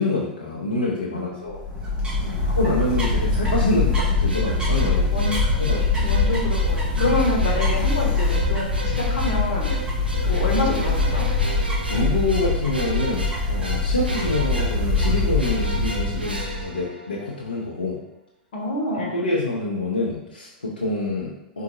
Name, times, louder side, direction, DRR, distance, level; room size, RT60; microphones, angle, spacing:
voice 1, 0.0-1.6 2.4-5.0 5.5-6.1 7.0-7.1 11.9-17.9 19.0-21.6, left 2 dB, 80° left, -5 dB, 0.7 m, -26 dB
voice 2, 1.1-1.4 2.2-2.4 5.1-5.4 5.9-9.8 10.2-11.2 18.5-19.2, left 1 dB, 60° left, -1 dB, 1.1 m, -27 dB
sound 1, 1.5-16.7, left 3 dB, 15° right, 1.3 m, -23 dB
sound 2, 4.3-17.5, right 1 dB, 85° right, 0.6 m, -35 dB
4.8 x 3.7 x 2.6 m, 0.86 s
figure-of-eight pair, 95°, 5 cm